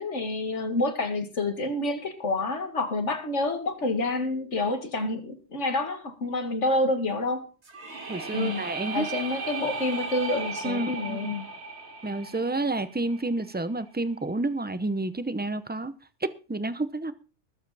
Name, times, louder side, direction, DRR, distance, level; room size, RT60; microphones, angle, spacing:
voice 1, 0.0-7.5 8.3-8.6 8.9-11.5, left 2 dB, 85° left, 2.3 m, -28 dB
sound 1, 7.6-13.5, right 4 dB, 70° right, 2.3 m, -36 dB
voice 2, 8.1-9.1 10.6-11.4 12.0-15.9 16.2-17.1, right 2 dB, 10° right, 0.6 m, -30 dB
20.5 x 7.5 x 4.2 m
omnidirectional pair, 1.2 m